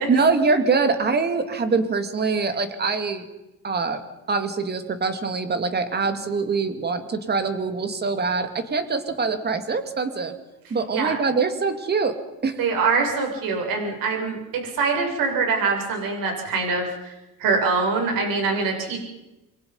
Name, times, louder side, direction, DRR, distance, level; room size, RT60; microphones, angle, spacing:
voice 1, 0.1-3.3 3.6-4.0 4.3-10.4 10.7-12.2 12.4-12.6, right 4 dB, 30° right, 8 dB, 2.3 m, -24 dB
voice 2, 12.6-19.0, right 4 dB, 70° right, 2 dB, 7.3 m, -24 dB
27.5 x 23.0 x 5.5 m, 0.99 s
cardioid pair, 150°, 35 cm